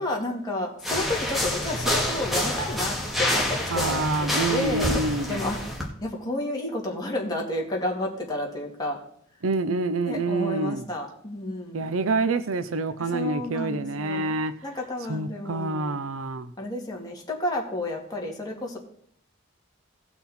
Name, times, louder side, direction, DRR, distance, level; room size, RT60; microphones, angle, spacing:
voice 1, 0.0-4.1 4.3-4.9 5.3-5.6 6.0-9.0 10.1-11.9 13.0-14.4 14.6-16.0 16.6-18.8, left 1 dB, 20° left, 2.4 m, -31 dB
sound 1, 0.8-5.9, left 1 dB, ahead, 2.0 m, -27 dB
voice 2, 3.7-5.4 9.4-10.9 11.7-14.5 15.1-16.5, right 3 dB, 90° right, 0.7 m, -27 dB
17.5 x 6.0 x 4.3 m
head